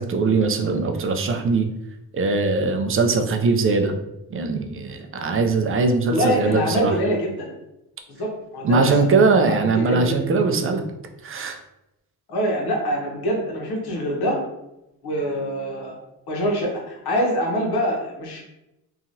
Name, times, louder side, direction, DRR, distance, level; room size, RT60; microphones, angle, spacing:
voice 1, 0.0-1.7 2.1-3.9 4.3-6.9 8.6-10.8 11.2-11.6, right 4 dB, 35° right, 6 dB, 0.4 m, -21 dB
voice 2, 6.1-7.5 8.2-9.0 9.4-10.2 12.3-14.4 15.0-15.9 16.3-18.4, equal, 80° left, -1 dB, 1.0 m, -24 dB
2.9 x 2.3 x 2.7 m, 0.90 s
cardioid pair, 105°, 38 cm